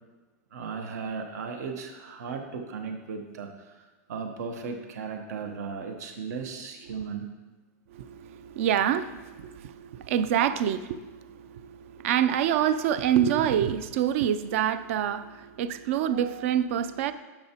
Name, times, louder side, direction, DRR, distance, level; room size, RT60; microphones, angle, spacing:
voice 1, 0.5-3.8 4.1-7.3, right 5 dB, 80° right, 1.0 m, -36 dB
voice 2, 7.9-17.1, right 9 dB, 50° right, 0.4 m, -27 dB
10.5 x 6.8 x 2.9 m
supercardioid pair, 165°, 9 cm